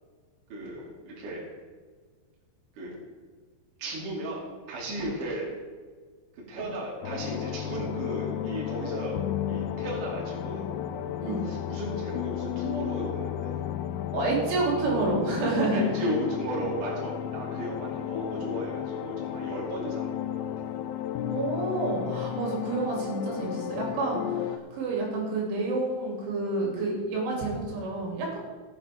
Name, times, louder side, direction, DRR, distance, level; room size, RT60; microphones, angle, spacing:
voice 1, 0.5-1.4 2.7-3.0 3.8-5.5 6.4-9.2 9.5-10.7 11.3-13.6 15.7-20.7, right 1 dB, 45° right, -4 dB, 3.8 m, -35 dB
sound 1, 7.0-24.6, left 10 dB, 85° left, 2.6 m, -33 dB
voice 2, 14.1-15.8 21.3-28.4, right 3 dB, 75° right, -3 dB, 5.3 m, -29 dB
18.0 x 8.0 x 3.7 m, 1.5 s
omnidirectional pair, 5.6 m